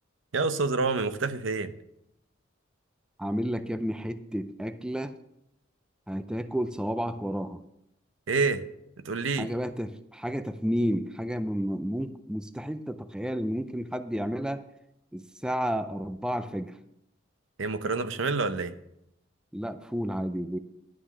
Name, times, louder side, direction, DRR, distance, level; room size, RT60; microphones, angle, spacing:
voice 1, 0.3-1.7 8.3-8.6 9.0-9.5 17.6-18.7, right 4 dB, 75° right, 11 dB, 0.7 m, -27 dB
voice 2, 3.2-5.1 6.1-7.6 9.4-14.6 15.1-16.8 19.5-20.6, equal, 5° right, 10 dB, 0.4 m, -31 dB
11.5 x 6.0 x 6.7 m, 0.80 s
head